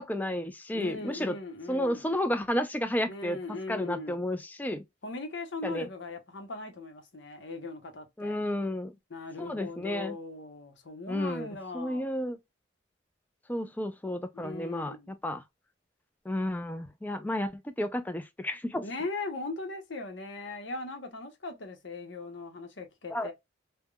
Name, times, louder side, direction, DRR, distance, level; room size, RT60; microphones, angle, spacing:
voice 1, 0.0-1.3 1.7-3.4 3.7-4.8 5.6-5.9 8.2-8.9 9.4-10.2 11.1-11.5 11.7-12.4 13.5-15.4 16.3-18.8 23.1-23.3, left 1 dB, 10° left, 0.3 m, -32 dB
voice 2, 0.7-2.1 3.1-4.3 5.0-8.4 9.1-12.1 14.3-15.1 18.8-23.3, left 3 dB, 70° left, 0.8 m, -39 dB
3.4 x 2.1 x 2.2 m
head